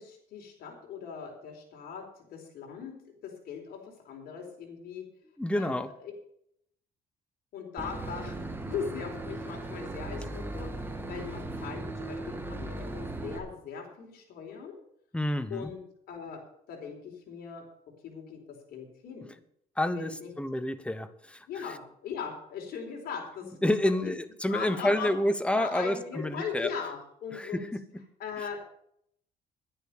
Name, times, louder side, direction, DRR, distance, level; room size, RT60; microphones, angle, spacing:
voice 1, 0.0-5.0 5.5-6.1 7.5-14.8 15.5-15.8 16.1-17.7 18.0-18.4 18.7-19.3 19.9-20.3 21.5-24.1 24.5-25.1 25.5-27.7 28.2-28.7, left 6 dB, 65° left, 1 dB, 4.3 m, -39 dB
voice 2, 5.4-5.9 15.1-15.7 19.8-20.1 20.4-21.5 23.6-26.7 27.3-27.8, left 1 dB, 5° left, 12 dB, 1.0 m, -29 dB
Boat Water vehicle / Engine, 7.8-13.4, right 2 dB, 10° right, 1.9 m, -37 dB
10.5 x 10.0 x 6.7 m, 0.70 s
cardioid pair, 110°, 17 cm